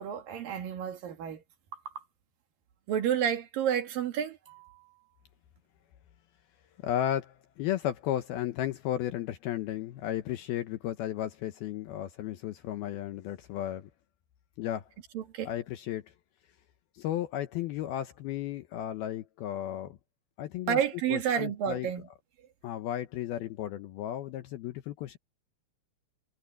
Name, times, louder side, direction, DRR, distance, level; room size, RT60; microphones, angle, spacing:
voice 1, 0.0-1.4 2.9-4.9 15.1-15.5 20.7-22.1, right 9 dB, 55° right, 2.9 m, -30 dB
voice 2, 6.8-13.9 14.6-14.9 15.5-16.0 17.0-20.0 20.4-20.8 21.1-21.9 22.6-25.2, left 12 dB, 85° left, 2.1 m, -34 dB
omnidirectional pair, 5.8 m